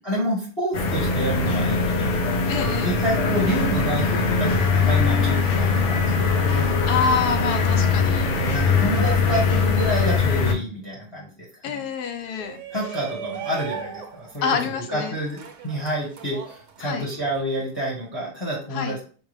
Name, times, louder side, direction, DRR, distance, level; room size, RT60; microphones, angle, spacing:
voice 1, 0.0-2.2 2.8-6.7 8.3-11.3 11.6-11.8 12.7-14.5 14.9-19.0, equal, 20° left, -5 dB, 0.9 m, -28 dB
sound 1, 0.7-10.5, left 4 dB, 65° left, 0.7 m, -21 dB
voice 2, 2.5-3.0 6.9-8.3 11.6-12.6 14.4-15.2 16.8-17.1 18.7-19.0, left 5 dB, 85° left, 6 dB, 1.2 m, -26 dB
Shout, 12.3-17.4, right 7 dB, 70° right, 0.7 m, -37 dB
4.7 x 2.3 x 3.1 m, 0.41 s
omnidirectional pair, 1.7 m